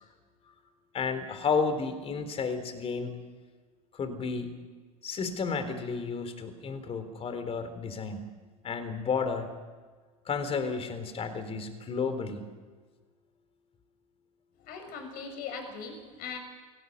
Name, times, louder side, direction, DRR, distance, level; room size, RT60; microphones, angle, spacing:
voice 1, 0.9-3.2 3.9-4.5 5.0-8.3 8.6-9.5 10.3-12.4, left 5 dB, 30° left, 10 dB, 3.8 m, -32 dB
voice 2, 14.6-16.4, left 5 dB, 50° left, 6 dB, 6.7 m, -39 dB
28.0 x 18.0 x 8.3 m, 1.4 s
hypercardioid pair, 90°, 19 cm